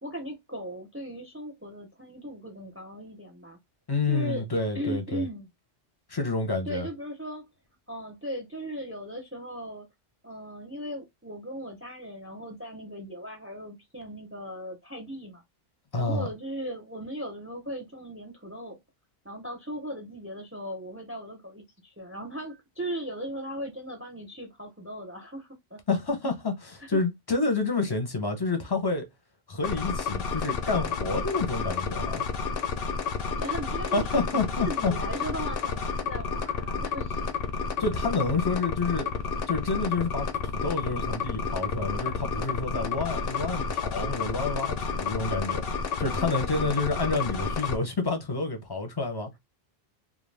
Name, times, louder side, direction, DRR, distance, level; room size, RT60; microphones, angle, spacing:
voice 1, 0.0-3.6 4.1-4.5 4.7-5.5 6.7-7.5 7.9-9.9 10.2-15.4 15.9-18.8 19.2-25.8 26.9-27.0 33.4-34.1 34.6-37.3 46.0-46.8 47.2-47.3, equal, 15° right, 0.6 m, -38 dB
voice 2, 3.9-5.3 6.1-6.9 15.9-16.3 25.9-29.1 29.5-32.2 33.9-34.9 37.8-39.1 39.5-49.4, left 3 dB, 30° left, 0.6 m, -29 dB
sound 1, 29.6-47.8, left 5 dB, 70° left, 0.8 m, -30 dB
2.4 x 2.2 x 3.3 m
omnidirectional pair, 1.1 m